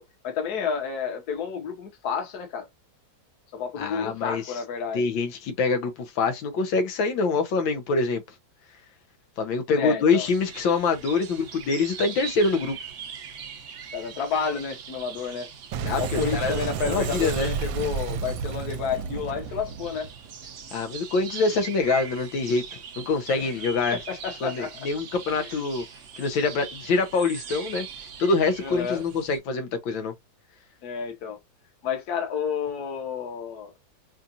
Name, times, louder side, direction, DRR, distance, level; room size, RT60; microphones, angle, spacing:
voice 1, 0.0-2.7 3.5-5.1 9.7-10.3 13.9-15.5 16.0-20.1 23.4-23.5 23.9-24.7 25.4-25.6 28.6-29.0 30.8-31.4 31.8-33.7, left 6 dB, 55° left, 1.6 m, -30 dB
voice 2, 3.8-4.6 4.9-8.2 9.4-12.8 15.8-16.6 16.9-17.5 20.7-24.0 24.4-25.8 26.2-30.1, left 4 dB, 80° left, 1.6 m, -25 dB
sound 1, 10.3-29.4, right 7 dB, 60° right, 0.8 m, -41 dB
Boom, 15.7-20.9, right 6 dB, 80° right, 1.3 m, -31 dB
5.5 x 2.4 x 2.7 m
omnidirectional pair, 2.1 m